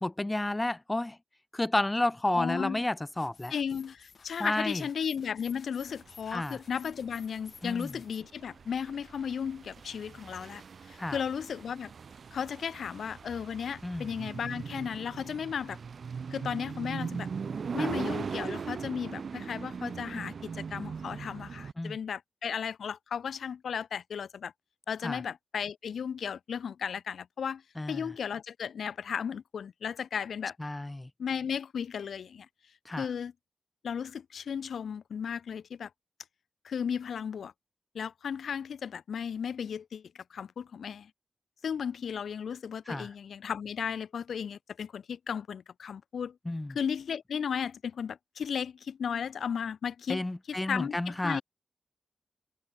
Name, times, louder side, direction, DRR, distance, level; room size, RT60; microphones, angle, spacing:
voice 1, 0.0-1.2 1.5-3.5 4.4-4.8 6.3-6.6 7.6-7.9 11.0-11.2 13.8-14.1 17.8-17.9 21.8-22.0 25.0-25.2 27.8-28.1 30.6-31.1 32.8-33.1 42.9-43.1 46.4-46.8 50.1-51.4, left 1 dB, 20° left, 1.0 m, -31 dB
voice 2, 2.3-2.8 3.5-11.9 12.3-15.8 16.3-17.3 17.7-24.5 24.9-27.6 27.9-30.6 31.2-32.5 32.9-33.3 33.8-35.9 36.6-37.5 37.9-41.1 41.6-46.4 46.7-51.0 51.2-51.4, left 7 dB, 90° left, 1.4 m, -35 dB
sound 1, 3.1-8.2, left 5 dB, 70° left, 7.1 m, -55 dB
sound 2, 5.9-21.7, right 6 dB, 75° right, 1.1 m, -40 dB
cardioid pair, 55°, 0 cm